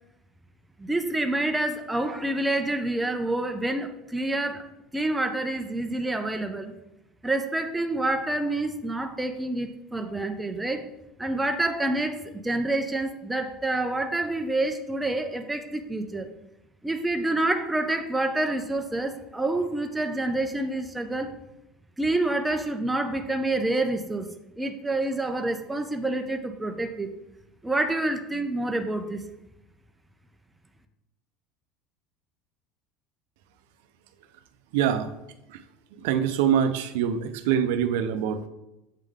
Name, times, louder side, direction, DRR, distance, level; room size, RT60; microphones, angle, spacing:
voice 1, 0.8-4.6 4.9-6.7 7.2-10.9 11.2-16.3 16.8-21.3 22.0-24.3 24.6-27.1 27.6-29.2, right 2 dB, 5° right, 6 dB, 0.3 m, -27 dB
voice 2, 34.7-35.1 36.0-38.5, right 8 dB, 85° right, 9 dB, 0.5 m, -24 dB
7.4 x 3.7 x 3.5 m, 0.93 s
cardioid pair, 180°, 0 cm